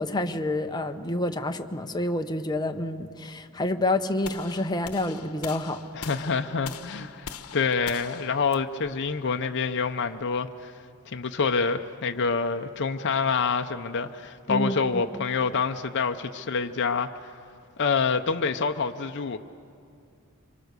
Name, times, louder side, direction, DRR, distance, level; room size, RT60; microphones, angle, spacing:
voice 1, 0.0-5.8 14.5-15.0, left 1 dB, 20° left, 6 dB, 0.8 m, -28 dB
sound 1, 4.2-10.3, left 7 dB, 80° left, 1.0 m, -42 dB
voice 2, 5.9-10.7 11.1-17.1 17.8-19.4, left 5 dB, 55° left, 6 dB, 0.7 m, -27 dB
25.5 x 24.0 x 6.7 m, 2.4 s
head